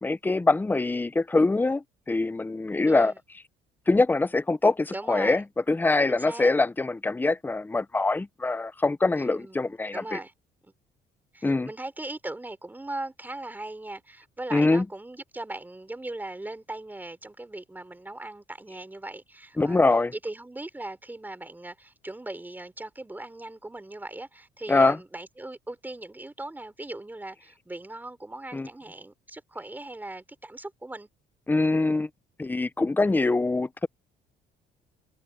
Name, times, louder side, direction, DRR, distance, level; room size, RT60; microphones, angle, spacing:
voice 1, 0.0-3.1 3.9-10.2 11.4-11.7 14.5-14.8 19.6-20.1 24.7-25.0 28.5-28.7 31.5-32.1 32.4-33.9, left 3 dB, 10° left, 0.7 m, -24 dB
voice 2, 2.9-3.2 4.9-5.4 6.1-6.5 9.2-10.3 10.6-10.7 11.3-19.8 20.1-31.1, right 2 dB, 10° right, 3.7 m, -39 dB
cardioid pair, 110°, 17 cm